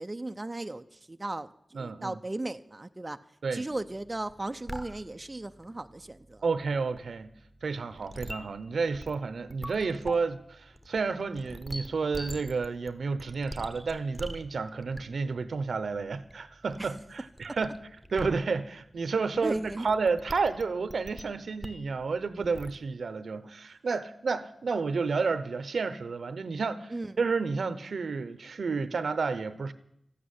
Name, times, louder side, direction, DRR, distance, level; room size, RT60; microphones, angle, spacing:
voice 1, 0.0-3.2 3.5-6.4 16.8-16.9 17.5-17.6 19.4-19.8 26.9-27.1, right 2 dB, 25° right, 8 dB, 0.5 m, -36 dB
voice 2, 1.7-2.2 3.4-3.7 6.4-7.3 7.6-17.8 18.1-29.7, right 4 dB, 75° right, 14 dB, 0.8 m, -31 dB
sound 1, 3.7-22.8, equal, 5° right, 1.1 m, -46 dB
14.0 x 8.5 x 9.6 m, 0.77 s
wide cardioid pair, 85°, 0 cm